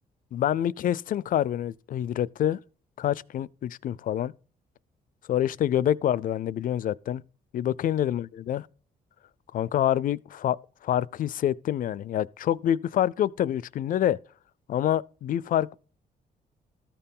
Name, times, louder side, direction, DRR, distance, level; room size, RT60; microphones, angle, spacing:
voice 1, 0.3-2.6 3.0-4.3 5.3-7.2 7.5-8.6 9.5-10.6 10.8-14.2 14.7-15.7, left 11 dB, 55° left, 0.4 m, -26 dB
13.5 x 4.5 x 5.4 m
cardioid pair, 125°, 17 cm